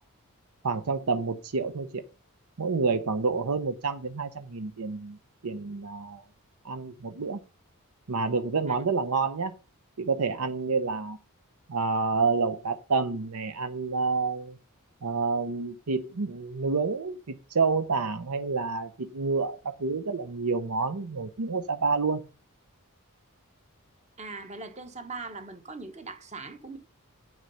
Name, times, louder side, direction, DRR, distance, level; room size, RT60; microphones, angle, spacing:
voice 1, 0.6-2.0 2.6-5.2 5.4-6.2 6.6-7.4 8.1-9.5 10.0-11.2 11.7-14.6 15.0-22.2, right 4 dB, 80° right, 0.8 m, -28 dB
voice 2, 24.2-26.8, right 3 dB, 30° right, 1.3 m, -40 dB
8.9 x 6.2 x 5.6 m
head